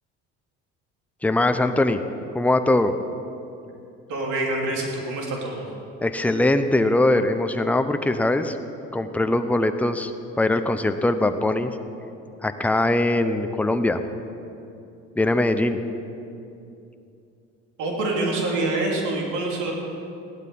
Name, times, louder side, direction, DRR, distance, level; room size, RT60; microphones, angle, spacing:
voice 1, 1.2-2.0 2.3-2.9 6.0-8.6 8.9-10.1 10.4-11.7 12.4-14.0 15.2-15.8, left 2 dB, 5° left, 8 dB, 0.8 m, -21 dB
voice 2, 4.1-5.7 17.8-19.7, right 2 dB, 65° right, -1 dB, 3.1 m, -26 dB
15.5 x 11.5 x 5.5 m, 2.7 s
hypercardioid pair, 70°, 33 cm